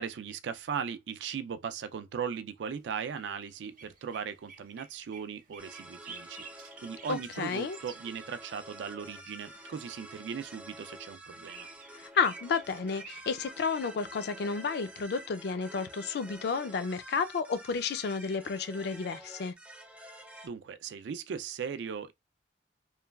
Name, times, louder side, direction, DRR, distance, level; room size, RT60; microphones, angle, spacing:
voice 1, 0.0-11.7 20.4-22.1, right 7 dB, 85° right, 0.3 m, -38 dB
sound 1, 3.0-9.7 10.6-13.5, right 5 dB, 50° right, 0.7 m, -51 dB
sound 2, 5.6-20.5, right 1 dB, 10° right, 0.4 m, -49 dB
voice 2, 7.1-7.8 12.0-19.5, left 5 dB, 65° left, 0.4 m, -31 dB
3.0 x 2.3 x 2.2 m
head